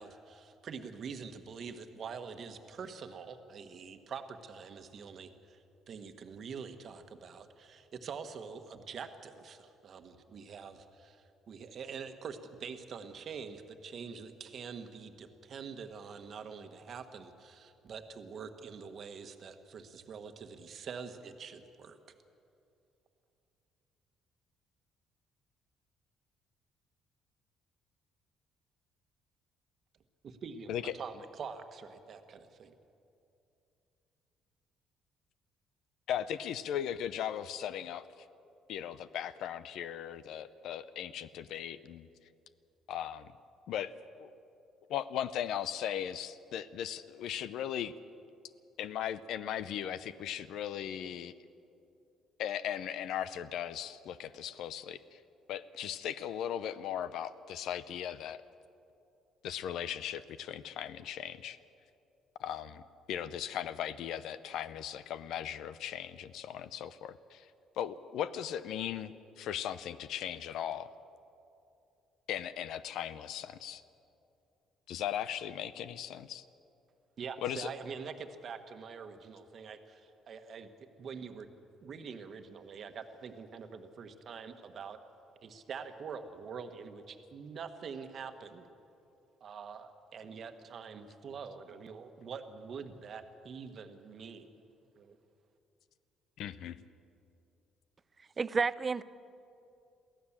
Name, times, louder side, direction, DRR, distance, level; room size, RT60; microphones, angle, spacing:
voice 1, 0.0-22.0 30.2-32.8 77.2-80.7 81.0-81.5 81.8-85.0 85.4-88.7 89.4-94.5 94.9-95.2, right 6 dB, 45° right, 8 dB, 1.3 m, -45 dB
voice 2, 36.1-38.1 38.7-42.1 42.9-43.3 43.7-43.9 44.2-44.3 44.9-47.9 48.8-51.3 52.4-55.2 55.5-58.4 59.4-61.6 62.4-62.8 63.1-67.5 67.8-70.9 72.3-73.8 74.9-76.4 77.4-77.7 96.4-96.8, left 10 dB, 70° left, 14 dB, 0.6 m, -38 dB
voice 3, 98.4-99.0, right 4 dB, 25° right, 17 dB, 0.4 m, -30 dB
23.0 x 15.5 x 7.3 m, 2.7 s
cardioid pair, 145°, 0 cm